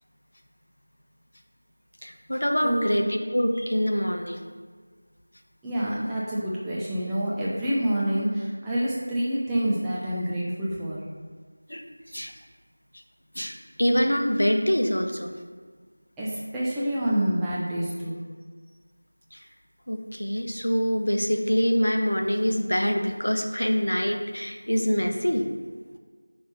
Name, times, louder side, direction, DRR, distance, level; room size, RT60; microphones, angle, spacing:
voice 1, 2.0-4.4 11.7-12.3 13.3-15.4 19.3-19.5 19.9-25.5, equal, 75° left, 4 dB, 0.8 m, -25 dB
voice 2, 2.6-3.1 5.6-11.0 16.2-18.2, right 1 dB, 5° right, -9 dB, 0.4 m, -27 dB
5.6 x 3.4 x 5.6 m, 1.5 s
figure-of-eight pair, 175°, 0 cm